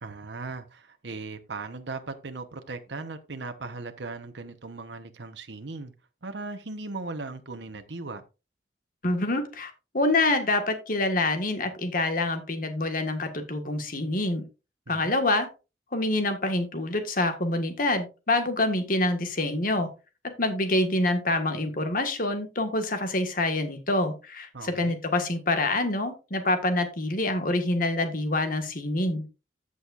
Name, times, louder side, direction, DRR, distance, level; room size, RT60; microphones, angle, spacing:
voice 1, 0.0-5.9 6.2-8.2 14.9-15.2 24.5-25.0, right 3 dB, 80° right, 1.0 m, -38 dB
voice 2, 9.0-14.4 14.9-15.5 15.9-19.9 20.4-29.2, left 2 dB, 50° left, 1.7 m, -26 dB
14.0 x 6.4 x 2.5 m
head